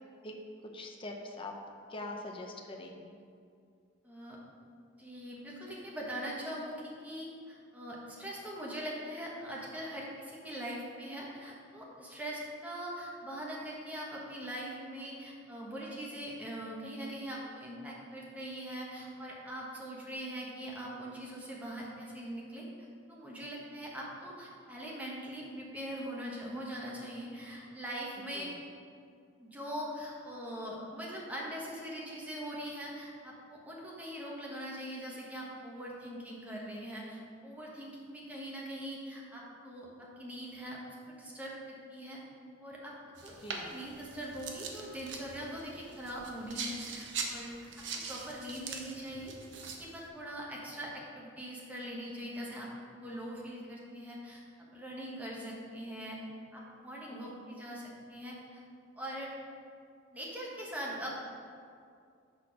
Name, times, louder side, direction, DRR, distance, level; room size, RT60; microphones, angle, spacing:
voice 1, 0.7-1.5 1.9-3.0 28.3-28.5 43.4-43.7 57.1-57.4, left 2 dB, 25° left, 1 dB, 0.7 m, -43 dB
voice 2, 4.0-4.4 5.0-22.6 23.1-28.5 29.4-40.8 41.1-42.2 42.6-42.9 43.2-43.3 43.6-47.5 48.1-49.3 49.8-56.2 56.5-58.6 59.0-59.3 60.1-61.2, equal, 10° right, -5 dB, 1.2 m, -42 dB
sound 1, 43.2-50.1, right 5 dB, 70° right, 0.8 m, -42 dB
6.2 x 4.4 x 5.9 m, 2.3 s
head